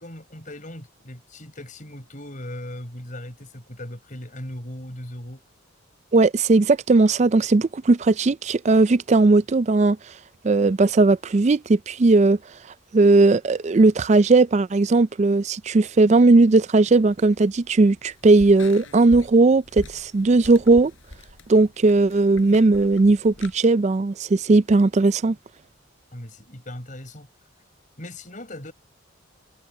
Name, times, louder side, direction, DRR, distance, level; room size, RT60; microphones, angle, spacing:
voice 1, 0.0-5.4 26.1-27.3 28.0-28.7, left 1 dB, 40° left, 4.5 m, -38 dB
voice 2, 6.1-10.0 10.4-12.4 12.9-20.9 21.5-25.4, right 3 dB, 35° right, 0.4 m, -17 dB
sound 1, 16.9-23.5, left 1 dB, 75° left, 5.6 m, -43 dB
head